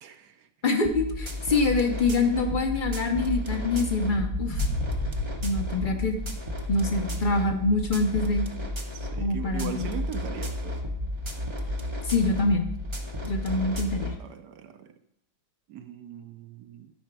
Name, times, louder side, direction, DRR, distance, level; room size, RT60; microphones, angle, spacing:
voice 1, 0.0-0.5 5.8-6.1 8.9-10.8 14.2-14.9 15.7-16.9, right 9 dB, 70° right, 8 dB, 1.2 m, -39 dB
voice 2, 0.6-4.6 5.4-6.2 6.7-8.5 9.2-9.9 12.0-12.7 13.2-14.1, left 3 dB, 40° left, 5 dB, 0.7 m, -25 dB
sound 1, 0.8-14.2, left 1 dB, 30° right, 0.5 m, -33 dB
Boom, 4.5-7.5, left 2 dB, 70° left, 1.9 m, -33 dB
11.5 x 4.9 x 6.0 m, 0.78 s
omnidirectional pair, 1.9 m